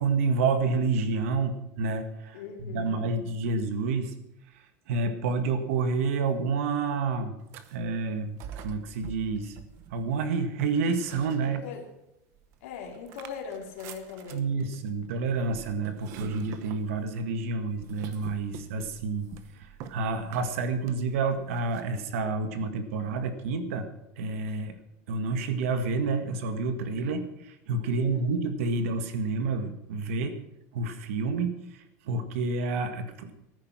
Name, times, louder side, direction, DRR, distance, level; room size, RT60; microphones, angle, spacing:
voice 1, 0.0-2.4 2.7-4.1 4.9-7.4 7.7-8.4 8.6-9.6 9.9-11.6 14.3-19.3 19.6-23.9 24.2-24.8 25.1-30.4 30.7-33.3, right 4 dB, 85° right, 9 dB, 1.8 m, -29 dB
voice 2, 2.3-3.1 11.4-11.9 12.6-14.5 27.9-28.2, left 6 dB, 85° left, 0 dB, 3.0 m, -40 dB
sound 1, 7.4-7.9 8.4-10.3 10.8-11.9 12.3-21.9, right 9 dB, 40° right, 1.0 m, -47 dB
14.5 x 9.9 x 6.1 m, 0.86 s
supercardioid pair, 175°, 7 cm